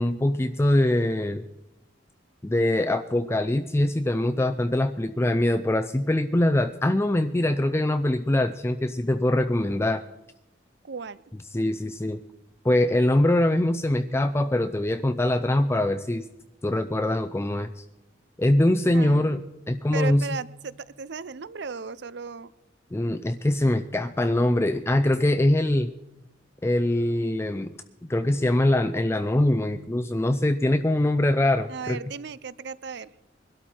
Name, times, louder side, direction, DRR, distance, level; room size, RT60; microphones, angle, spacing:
voice 1, 0.0-1.4 2.4-10.0 11.5-12.2 12.6-16.3 16.6-17.8 18.4-20.2 22.9-25.9 26.6-27.7 28.0-32.0, left 1 dB, 15° left, 8 dB, 0.5 m, -23 dB
voice 2, 10.8-11.2 18.9-19.4 19.9-22.5 31.7-33.1, right 5 dB, 65° right, 18 dB, 0.6 m, -35 dB
22.0 x 12.5 x 4.5 m, 0.93 s
head